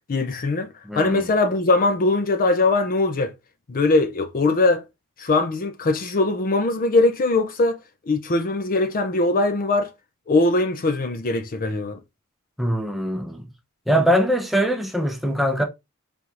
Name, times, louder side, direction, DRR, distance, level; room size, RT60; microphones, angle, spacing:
voice 1, 0.1-0.7 0.9-3.3 3.7-4.8 5.2-7.8 8.1-9.9 10.3-12.0, left 2 dB, 40° left, 0.6 m, -21 dB
voice 2, 0.9-1.3 12.6-13.4 13.9-15.6, equal, ahead, 0.7 m, -22 dB
3.5 x 2.6 x 4.6 m
head